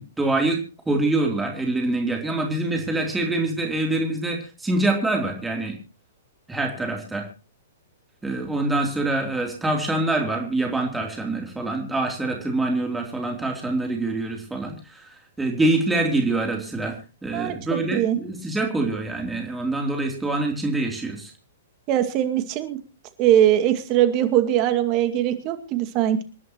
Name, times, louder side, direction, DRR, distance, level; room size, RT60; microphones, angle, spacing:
voice 1, 0.0-5.8 6.5-7.3 8.2-21.3, right 2 dB, 10° right, 1 dB, 3.2 m, -25 dB
voice 2, 17.3-18.2 21.9-22.8 23.2-26.2, right 11 dB, 40° right, 9 dB, 2.2 m, -21 dB
27.0 x 11.0 x 3.1 m, 0.33 s
hypercardioid pair, 120°, 0 cm